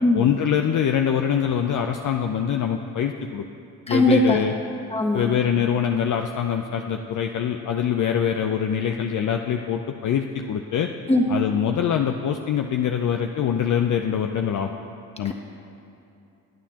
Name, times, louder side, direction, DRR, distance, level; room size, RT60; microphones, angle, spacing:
voice 1, 0.1-3.4 3.9-4.5 5.1-10.9 11.3-14.7 15.2-15.3, left 8 dB, 50° left, 4 dB, 0.6 m, -24 dB
voice 2, 3.9-4.4 4.9-5.3 11.1-11.2 15.2-15.3, left 1 dB, 15° left, 0 dB, 1.6 m, -19 dB
19.0 x 9.0 x 2.9 m, 2.6 s
supercardioid pair, 65°, 39 cm